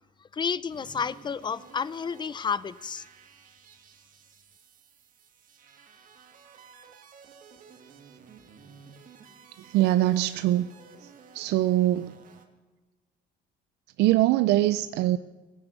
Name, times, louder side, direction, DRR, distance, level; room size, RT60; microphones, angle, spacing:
voice 1, 0.2-3.0, left 6 dB, 25° left, 19 dB, 0.5 m, -31 dB
sound 1, 0.7-12.5, right 6 dB, 55° right, 1.9 m, -53 dB
voice 2, 9.7-10.7 11.0-11.1 11.3-12.2 14.0-15.2, right 14 dB, 80° right, 13 dB, 0.5 m, -23 dB
18.0 x 10.0 x 8.1 m, 1.2 s
cardioid pair, 110°, 17 cm